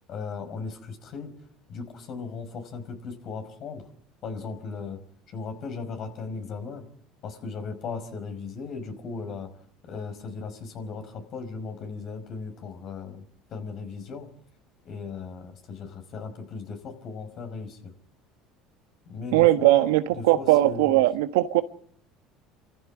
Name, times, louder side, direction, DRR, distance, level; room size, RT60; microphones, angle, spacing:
voice 1, 0.1-1.3 1.7-3.9 4.2-5.0 5.3-6.8 7.2-9.5 9.8-13.2 13.5-14.3 14.8-17.9 19.1-21.0, left 4 dB, 55° left, 6 dB, 5.1 m, -37 dB
voice 2, 19.3-21.6, right 16 dB, 85° right, 11 dB, 1.3 m, -20 dB
26.0 x 14.5 x 9.6 m, 0.64 s
supercardioid pair, 90°, 0 cm